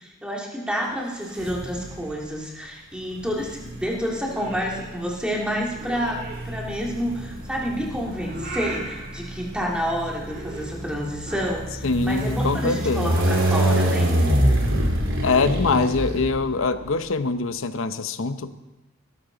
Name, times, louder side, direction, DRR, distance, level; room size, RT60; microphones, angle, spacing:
voice 1, 0.0-14.1, equal, 5° right, -2 dB, 2.2 m, -29 dB
sound 1, 1.4-2.1 3.2-16.9, right 1 dB, 75° right, 2.8 m, -26 dB
Purr / Meow, 4.1-11.5, right 2 dB, 50° right, 2.0 m, -40 dB
voice 2, 11.8-13.2 15.2-18.5, left 4 dB, 75° left, 11 dB, 0.7 m, -23 dB
17.5 x 13.0 x 3.9 m, 1.0 s
head